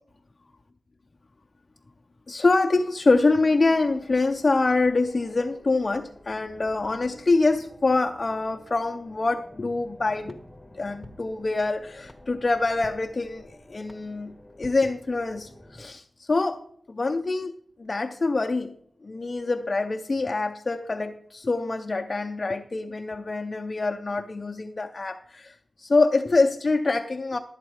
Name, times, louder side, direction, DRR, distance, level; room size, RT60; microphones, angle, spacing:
voice 1, 2.3-10.4 10.7-16.6 16.9-17.5 17.8-18.8 19.0-27.4, left 3 dB, 45° left, 0.5 m, -25 dB
sound 1, 3.6-15.9, left 1 dB, 15° left, 1.0 m, -51 dB
sound 2, 10.3-15.6, equal, 10° right, 1.6 m, -52 dB
12.5 x 8.1 x 4.8 m
cardioid pair, 65°, 0 cm